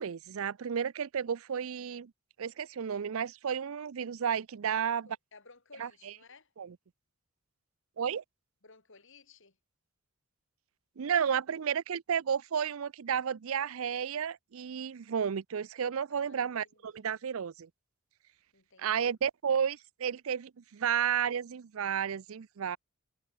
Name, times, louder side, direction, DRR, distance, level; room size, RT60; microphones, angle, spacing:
voice 1, 0.0-2.1 2.4-5.1 5.8-5.9 6.6-6.7 8.0-8.2 11.0-17.7 18.8-22.8, right 7 dB, 70° right, 0.5 m, -32 dB
voice 2, 4.7-6.5 8.6-9.6 16.1-17.2 18.5-19.1, left 4 dB, 60° left, 4.4 m, -58 dB
head